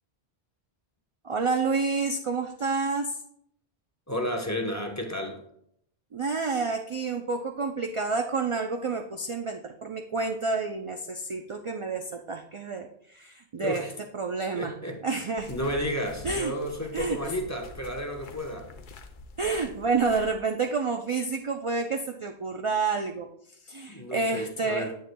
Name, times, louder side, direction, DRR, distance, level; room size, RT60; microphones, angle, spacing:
voice 1, 1.2-3.2 6.1-14.7 15.0-15.5 16.2-16.5 16.9-17.3 19.4-24.9, right 4 dB, 50° right, 0.4 m, -29 dB
voice 2, 4.1-5.4 13.6-13.9 14.5-18.7 23.9-24.9, equal, 15° left, 0.9 m, -32 dB
sound 1, 15.4-20.3, left 3 dB, 55° left, 0.7 m, -45 dB
9.4 x 7.7 x 2.2 m
omnidirectional pair, 1.1 m